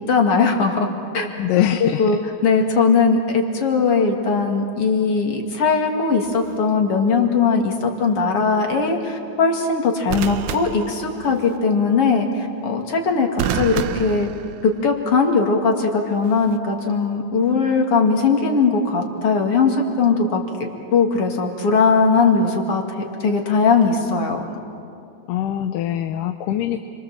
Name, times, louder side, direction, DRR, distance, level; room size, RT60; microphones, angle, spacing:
voice 1, 0.1-0.9 1.1-1.3 1.8-13.3 13.5-14.3 14.6-20.4 20.9-22.8 23.2-24.4, left 4 dB, 45° left, 2 dB, 3.1 m, -19 dB
voice 2, 1.4-2.2 25.3-26.8, left 11 dB, 85° left, 8 dB, 2.4 m, -23 dB
sound 1, 6.2-6.6 10.1-11.6 13.4-15.0 16.2-16.6, right 8 dB, 75° right, 2.2 m, -29 dB
29.5 x 24.5 x 7.5 m, 2.5 s
omnidirectional pair, 3.7 m